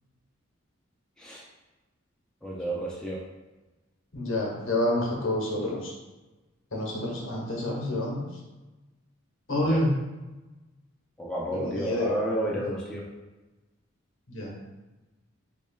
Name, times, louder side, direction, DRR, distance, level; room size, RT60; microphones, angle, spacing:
voice 1, 2.4-3.2 9.5-9.8 11.2-13.1, right 1 dB, 5° left, -5 dB, 0.4 m, -31 dB
voice 2, 4.1-5.9 6.7-8.2 9.5-9.9 11.6-12.1 14.3-14.6, left 1 dB, 65° left, -3 dB, 0.9 m, -28 dB
6.2 x 2.2 x 2.2 m, 1.1 s
head